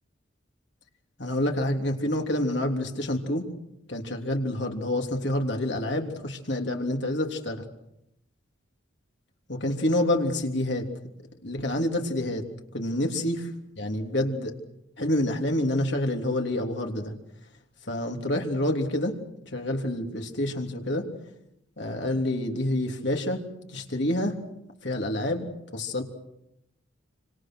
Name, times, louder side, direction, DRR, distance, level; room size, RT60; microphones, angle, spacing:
voice 1, 1.2-3.5 3.9-7.7 9.5-10.9 11.4-12.4 12.7-13.4 13.8-14.6 15.0-17.1 17.9-19.2 19.5-21.1 21.8-23.4 23.7-24.4 24.8-26.0, left 1 dB, 60° left, 2 dB, 3.4 m, -27 dB
28.5 x 26.0 x 6.3 m, 0.82 s
head